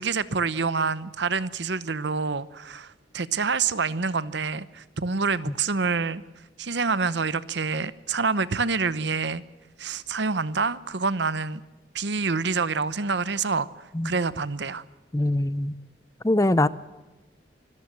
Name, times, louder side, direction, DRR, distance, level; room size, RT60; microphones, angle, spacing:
voice 1, 0.0-6.2 6.6-9.4 9.8-11.6 11.9-13.7 14.0-14.8, right 4 dB, 70° right, 16 dB, 0.9 m, -27 dB
voice 2, 15.1-15.7 16.2-16.7, left 1 dB, 15° left, 17 dB, 0.6 m, -22 dB
25.0 x 14.0 x 7.6 m, 1.1 s
head